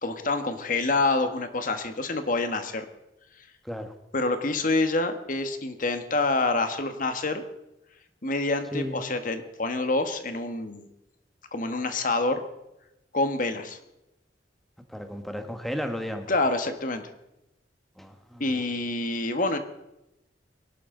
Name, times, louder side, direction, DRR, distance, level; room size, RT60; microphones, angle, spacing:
voice 1, 0.0-2.8 4.1-7.4 8.2-10.9 11.5-12.4 13.1-13.8 16.3-17.0 18.4-19.6, left 2 dB, 50° left, 8 dB, 1.5 m, -27 dB
voice 2, 14.9-16.3 18.0-18.6, equal, ahead, 6 dB, 1.4 m, -34 dB
23.0 x 11.5 x 3.9 m, 0.91 s
head